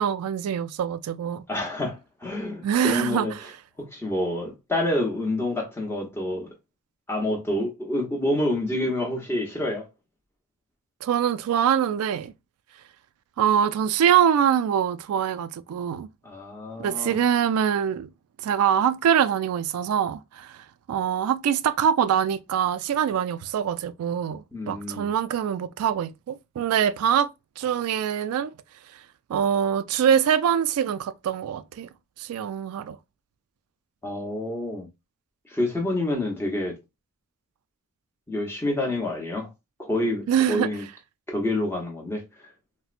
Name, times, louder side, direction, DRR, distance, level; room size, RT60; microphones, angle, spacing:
voice 1, 0.0-1.4 2.6-3.5 11.0-12.3 13.4-16.1 16.8-18.1 18.4-27.3 27.6-28.5 29.3-31.9 32.2-33.0 40.3-40.7, right 8 dB, 85° right, 0.3 m, -24 dB
voice 2, 1.5-3.3 3.8-6.5 7.1-9.9 16.2-17.2 24.5-25.1 34.0-34.9 35.5-36.7 38.3-39.5 39.8-40.8 41.3-42.2, left 1 dB, 10° left, 0.8 m, -28 dB
4.1 x 2.1 x 2.4 m
head